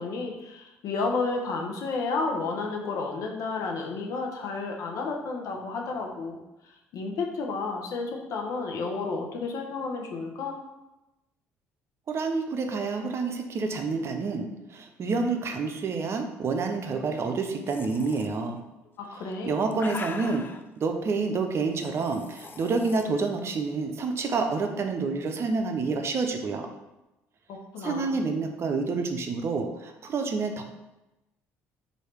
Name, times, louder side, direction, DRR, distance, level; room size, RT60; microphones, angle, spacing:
voice 1, 0.0-6.4 6.9-10.6 19.0-19.5 27.5-28.1, left 4 dB, 65° left, 1 dB, 0.8 m, -31 dB
voice 2, 12.1-18.6 19.4-20.4 20.8-26.7 27.8-30.6, right 4 dB, 45° right, 5 dB, 0.6 m, -28 dB
sound 1, 17.7-18.3 19.2-20.6 21.7-23.0, left 4 dB, 35° left, 0.4 m, -41 dB
3.2 x 2.7 x 4.5 m, 0.98 s
supercardioid pair, 65°, 6 cm